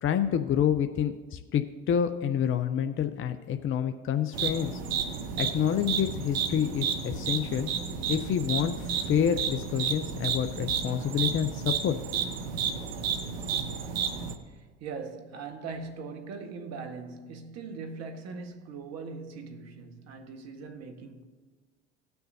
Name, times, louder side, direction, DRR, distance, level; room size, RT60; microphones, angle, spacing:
voice 1, 0.0-4.8 5.4-7.7 8.1-12.2, left 9 dB, 45° left, 0.7 m, -28 dB
sound 1, 4.3-14.4, right 7 dB, 85° right, 1.0 m, -32 dB
voice 2, 14.4-21.2, right 4 dB, 60° right, 1.5 m, -40 dB
18.0 x 6.8 x 2.7 m
hypercardioid pair, 65°, 30 cm